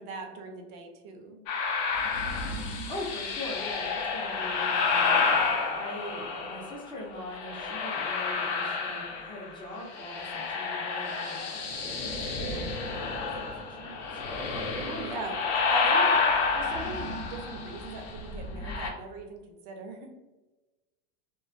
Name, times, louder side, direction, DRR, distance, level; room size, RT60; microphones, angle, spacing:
voice 1, 0.0-1.4 14.8-15.4 15.7-16.2 16.5-20.1, right 4 dB, 55° right, 4 dB, 0.6 m, -40 dB
sound 1, 1.5-6.8 7.3-9.5 9.8-18.9, left 4 dB, 70° left, 0.6 m, -29 dB
voice 2, 2.9-5.1 5.7-14.2, left 1 dB, 15° left, -4 dB, 0.5 m, -42 dB
2.3 x 2.2 x 2.5 m, 1.1 s
supercardioid pair, 120°, 32 cm